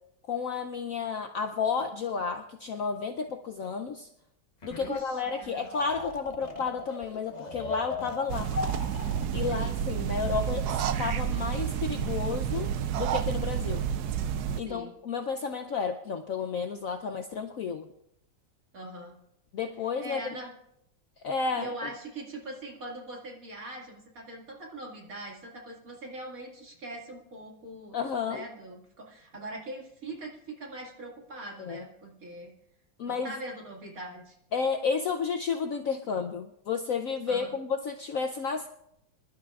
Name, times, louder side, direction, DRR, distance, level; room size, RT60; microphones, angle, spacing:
voice 1, 0.3-4.1 4.6-8.5 9.3-13.8 14.6-17.9 19.5-20.2 21.2-21.9 27.9-28.5 31.6-31.8 33.0-33.3 34.5-38.7, left 5 dB, 85° left, 5 dB, 0.7 m, -32 dB
sound 1, 4.6-5.0 5.3-9.5, left 4 dB, 35° left, 0.7 m, -38 dB
voice 2, 4.8-5.7 9.5-9.8 14.5-14.9 18.7-19.2 20.0-20.5 21.6-28.0 28.3-32.5 33.1-34.4 37.3-37.6, right 2 dB, 45° right, -1 dB, 2.5 m, -42 dB
sound 2, 8.3-14.6, right 9 dB, 70° right, 1.0 m, -30 dB
25.5 x 12.0 x 2.4 m, 0.78 s
omnidirectional pair, 2.2 m